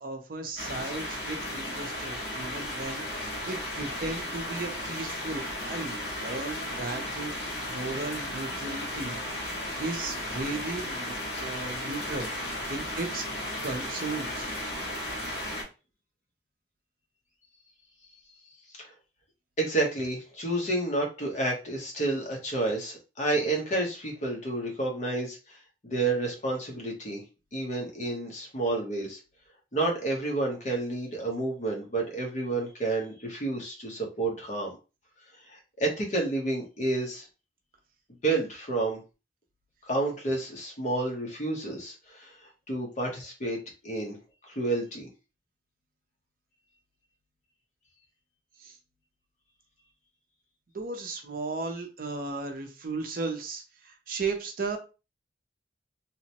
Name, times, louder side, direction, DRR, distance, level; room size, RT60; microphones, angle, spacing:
voice 1, 0.0-9.2 9.8-12.3 12.7-13.2 13.6-14.5 48.6-48.8 50.7-54.8, right 3 dB, 55° right, 5 dB, 0.6 m, -35 dB
sound 1, 0.6-15.6, left 1 dB, 70° left, 1.4 m, -35 dB
voice 2, 19.6-25.4 25.8-27.2 27.5-29.2 29.7-34.8 35.5-37.3 38.2-39.0 39.9-42.3 42.7-43.6 43.8-44.2 44.5-45.1, right 2 dB, 45° left, 0 dB, 0.8 m, -30 dB
2.9 x 2.1 x 2.8 m, 0.31 s
head